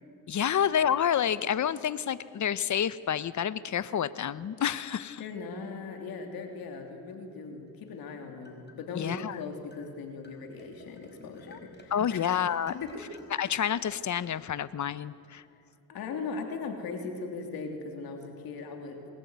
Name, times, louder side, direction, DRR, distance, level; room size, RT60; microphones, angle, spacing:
voice 1, 0.3-5.2 8.9-9.4 11.5-11.6 11.9-12.8 13.4-15.4, left 9 dB, 55° left, 16 dB, 1.0 m, -29 dB
voice 2, 5.2-12.4 12.8-13.1 15.9-19.0, left 4 dB, 90° left, 4 dB, 3.0 m, -39 dB
sound 1, 7.9-9.2 9.7-9.9 10.2-14.7, left 3 dB, 30° left, 5.2 m, -56 dB
26.0 x 20.5 x 9.5 m, 2.5 s
cardioid pair, 80°, 35 cm